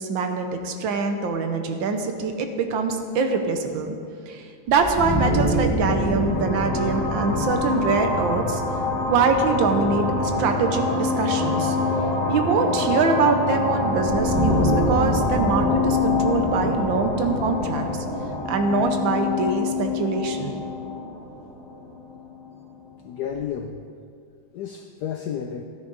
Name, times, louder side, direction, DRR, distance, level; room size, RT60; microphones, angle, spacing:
voice 1, 0.0-3.9 4.3-8.6 9.1-10.0 10.4-11.8 12.3-17.9 18.5-20.5, right 4 dB, 75° right, 6 dB, 1.5 m, -24 dB
sound 1, 4.7-22.4, left 2 dB, ahead, 0.9 m, -24 dB
voice 2, 23.0-23.8 24.5-25.6, left 8 dB, 80° left, 5 dB, 0.9 m, -32 dB
13.0 x 9.9 x 3.9 m, 2.3 s
omnidirectional pair, 2.2 m